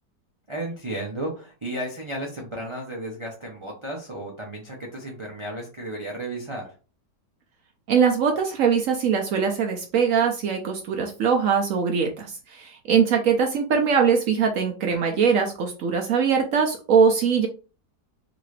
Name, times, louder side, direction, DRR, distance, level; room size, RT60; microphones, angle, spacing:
voice 1, 0.5-6.7, right 1 dB, 40° right, -2 dB, 0.4 m, -33 dB
voice 2, 7.9-17.5, right 6 dB, 65° right, 3 dB, 0.8 m, -22 dB
3.8 x 2.5 x 3.1 m, 0.35 s
omnidirectional pair, 1.8 m